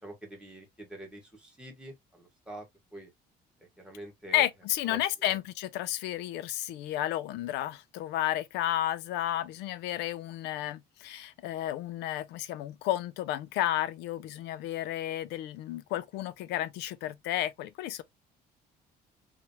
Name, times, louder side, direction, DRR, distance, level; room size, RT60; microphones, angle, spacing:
voice 1, 0.0-2.7 2.9-3.1 3.8-4.5 4.9-5.4, right 1 dB, 5° right, 1.5 m, -46 dB
voice 2, 4.3-18.0, left 13 dB, 90° left, 0.4 m, -32 dB
3.1 x 2.4 x 2.7 m
cardioid pair, 110°, 17 cm